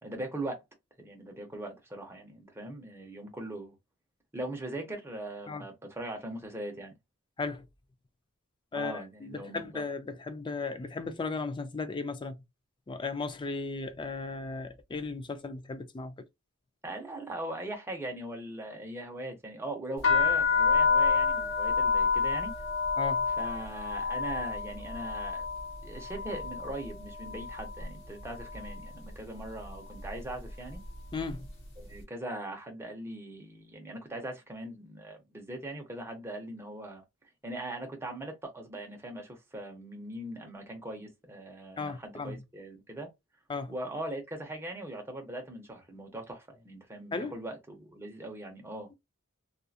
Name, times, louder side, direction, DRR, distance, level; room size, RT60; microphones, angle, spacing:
voice 1, 0.0-0.6 1.0-3.7 4.3-6.9 8.7-9.8 16.8-22.5 23.3-25.4 25.8-30.8 31.8-37.0 37.4-43.1 43.7-48.9, right 1 dB, 10° right, 0.7 m, -40 dB
voice 2, 8.7-12.4 12.9-16.3 23.0-23.2 31.1-31.5 41.8-42.3 43.5-43.7 47.1-47.3, left 4 dB, 20° left, 0.4 m, -36 dB
sound 1, 20.0-27.9 28.2-28.8 29.5-29.8 30.0-31.5, left 5 dB, 55° left, 1.1 m, -29 dB
2.7 x 2.4 x 2.3 m
head